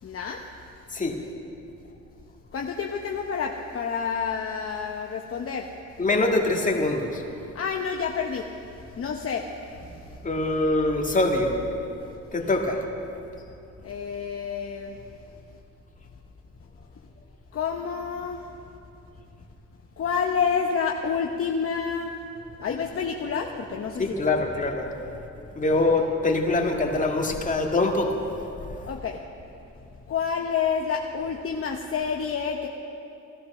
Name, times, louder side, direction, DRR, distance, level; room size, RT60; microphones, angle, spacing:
voice 1, 0.0-0.7 2.5-5.7 7.5-8.5 8.9-10.2 13.8-15.0 17.5-18.5 20.0-22.2 22.6-24.4 25.7-26.1 28.8-29.2 30.1-32.7, left 6 dB, 45° left, 1 dB, 1.0 m, -29 dB
voice 2, 6.0-7.2 10.2-11.6 12.3-12.8 24.0-24.9 25.6-28.2 28.6-28.8, left 2 dB, 25° left, 1 dB, 2.1 m, -24 dB
16.5 x 13.0 x 6.2 m, 2.7 s
cardioid pair, 90°, 30 cm